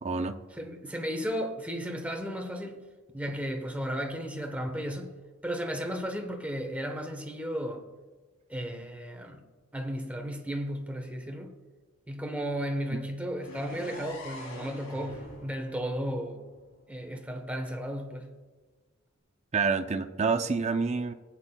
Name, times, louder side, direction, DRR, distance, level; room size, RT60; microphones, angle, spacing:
voice 1, 0.0-0.4 19.5-21.1, right 4 dB, 35° right, 0.5 m, -27 dB
voice 2, 0.5-2.8 3.1-5.1 5.4-7.9 8.5-9.4 9.7-11.6 12.1-16.4 16.9-18.3, equal, 5° right, 1.1 m, -34 dB
sound 1, 13.4-17.3, left 1 dB, 85° left, 2.9 m, -46 dB
18.0 x 8.9 x 2.3 m
head